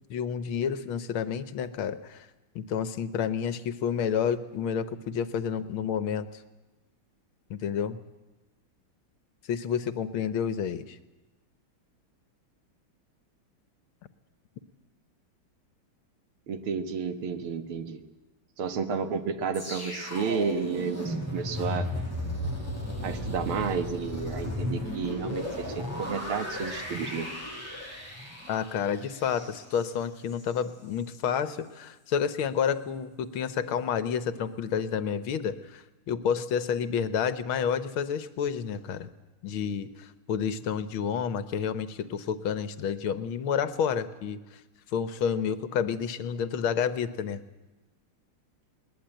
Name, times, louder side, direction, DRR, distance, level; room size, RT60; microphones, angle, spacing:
voice 1, 0.1-2.3 2.6-6.4 7.5-8.0 9.5-11.0 28.5-39.1 39.4-44.6 44.9-47.4, left 7 dB, 75° left, 13 dB, 1.8 m, -30 dB
voice 2, 16.5-18.0 18.6-21.9 23.0-27.3, right 6 dB, 80° right, 9 dB, 2.3 m, -31 dB
sound 1, 19.5-30.6 31.0-31.2, left 1 dB, 5° left, 7.6 m, -35 dB
20.5 x 20.0 x 9.1 m, 1.1 s
omnidirectional pair, 2.3 m